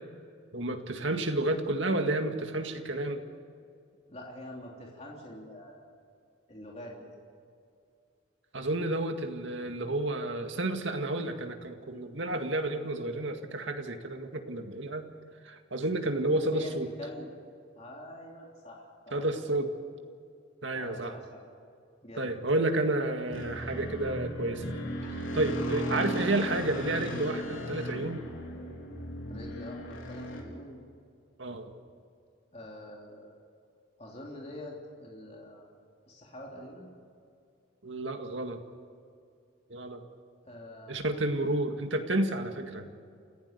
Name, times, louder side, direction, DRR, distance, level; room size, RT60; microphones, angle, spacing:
voice 1, 0.5-3.2 8.5-15.1 15.4-16.9 19.1-19.7 20.6-21.1 22.2-24.7 25.0-28.2 31.4-31.7 37.8-38.6 39.7-40.0 40.9-42.9, right 2 dB, 75° right, 5 dB, 2.0 m, -31 dB
voice 2, 4.1-5.8 6.5-7.1 16.5-17.3 17.8-19.2 20.7-21.5 22.0-22.4 25.4-25.7 29.3-30.8 32.5-33.4 34.0-35.7 36.1-36.9 40.4-41.2, left 1 dB, 30° left, -2 dB, 3.3 m, -45 dB
sound 1, 23.3-30.4, equal, 90° left, 3.7 m, -36 dB
28.5 x 15.5 x 6.8 m, 2.4 s
head